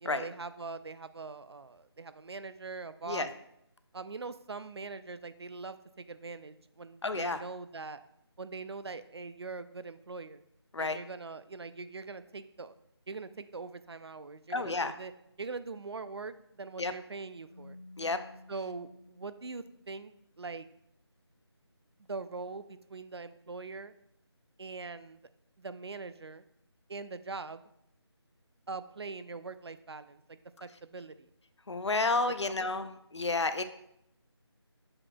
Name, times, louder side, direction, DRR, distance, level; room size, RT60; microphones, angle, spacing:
voice 1, 0.0-3.3 3.9-8.0 8.4-10.4 10.8-12.7 13.1-15.1 15.4-17.8 18.5-20.7 22.1-23.9 24.6-25.2 25.6-26.4 26.9-27.6 28.7-31.3 32.5-32.9, right 4 dB, 65° right, 13 dB, 0.4 m, -42 dB
voice 2, 7.0-7.4 10.7-11.0 14.5-14.9 16.8-16.9 18.0-18.2 31.7-33.6, left 3 dB, 80° left, 11 dB, 0.6 m, -31 dB
Keyboard (musical), 17.5-20.2, left 2 dB, 20° left, 2.5 m, -54 dB
7.7 x 6.0 x 2.2 m, 0.77 s
figure-of-eight pair, 165°, 14 cm